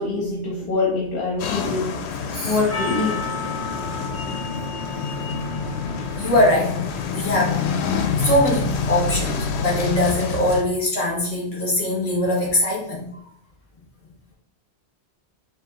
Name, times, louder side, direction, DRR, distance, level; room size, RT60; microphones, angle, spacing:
voice 1, 0.0-2.0 2.4-3.4, left 3 dB, 55° left, -2 dB, 1.0 m, -24 dB
sound 1, 1.4-10.6, left 5 dB, 80° left, 0.9 m, -27 dB
Percussion, 2.7-7.3, left 2 dB, 15° left, 0.8 m, -34 dB
voice 2, 6.2-13.1, left 1 dB, 35° left, -4 dB, 1.6 m, -22 dB
4.7 x 2.8 x 3.0 m, 0.65 s
omnidirectional pair, 1.1 m